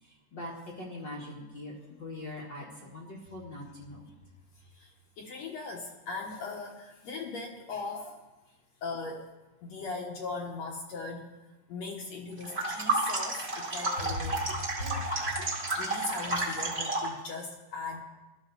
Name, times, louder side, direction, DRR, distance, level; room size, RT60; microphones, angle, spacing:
voice 1, 0.0-4.1 14.2-15.3, left 1 dB, 40° left, -4 dB, 1.7 m, -41 dB
voice 2, 5.2-8.2 8.8-9.3 9.6-11.3 11.7-15.1 15.4-15.5 15.7-18.0, left 3 dB, 65° left, -1 dB, 1.8 m, -39 dB
sound 1, 12.4-17.2, right 2 dB, 75° right, 0.5 m, -31 dB
18.0 x 12.5 x 4.0 m, 1.1 s
omnidirectional pair, 4.6 m